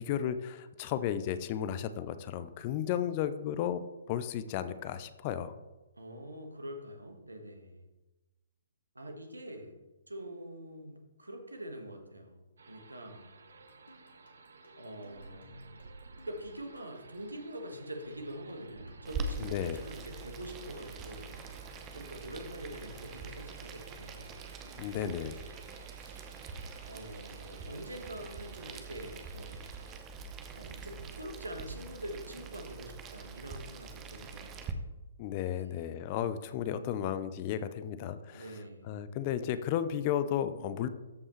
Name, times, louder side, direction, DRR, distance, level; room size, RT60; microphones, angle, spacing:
voice 1, 0.0-3.8 4.1-5.6 19.4-19.8 24.8-25.3 35.2-38.4 38.9-40.9, left 10 dB, 35° left, 12 dB, 0.5 m, -33 dB
voice 2, 6.0-7.8 8.9-9.7 10.1-12.4 12.7-13.3 14.8-15.8 16.2-21.4 21.9-24.3 25.0-25.5 25.9-26.3 26.8-29.6 30.6-34.8 35.5-35.8 38.3-39.0, right 1 dB, 80° right, 4 dB, 1.5 m, -45 dB
sound 1, 12.6-30.0, right 4 dB, 65° right, 0.8 m, -56 dB
sound 2, 13.5-25.8, left 1 dB, 70° left, 2.2 m, -58 dB
Boiling, 19.0-34.7, right 4 dB, 20° right, 0.8 m, -44 dB
13.5 x 5.4 x 3.2 m, 1.1 s
figure-of-eight pair, 125°, 0 cm